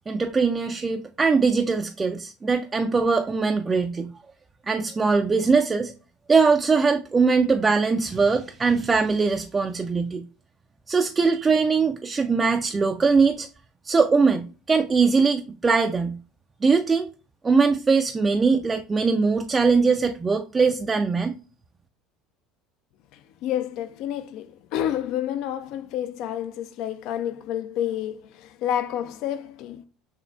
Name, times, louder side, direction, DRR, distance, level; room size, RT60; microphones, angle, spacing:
voice 1, 0.1-4.1 4.7-5.9 6.3-10.2 10.9-13.5 13.8-16.2 16.6-17.1 17.4-21.4, right 4 dB, 20° right, 0.4 m, -21 dB
voice 2, 23.1-29.8, left 10 dB, 50° left, 0.4 m, -29 dB
5.8 x 3.1 x 2.4 m
figure-of-eight pair, 65°, 0 cm